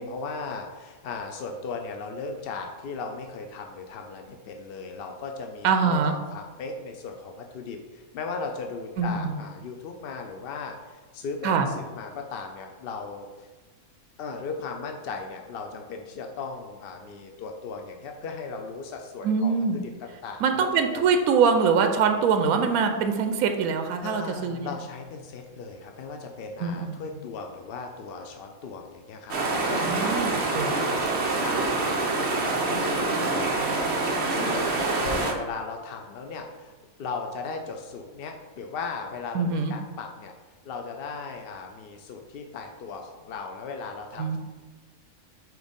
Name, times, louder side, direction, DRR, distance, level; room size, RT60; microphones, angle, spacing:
voice 1, 0.0-13.5 14.2-20.7 20.9-21.0 24.0-32.8 33.2-40.3 40.6-44.4, left 4 dB, 70° left, 3 dB, 0.5 m, -37 dB
voice 2, 5.6-6.1 9.0-9.4 11.4-11.7 19.2-19.8 20.4-24.7 26.6-27.0 29.8-30.7 39.3-39.7 44.2-44.4, right 5 dB, 80° right, 6 dB, 1.0 m, -23 dB
sound 1, 29.3-35.3, right 3 dB, 55° right, 1.0 m, -26 dB
4.8 x 3.9 x 5.1 m, 1.3 s
omnidirectional pair, 1.5 m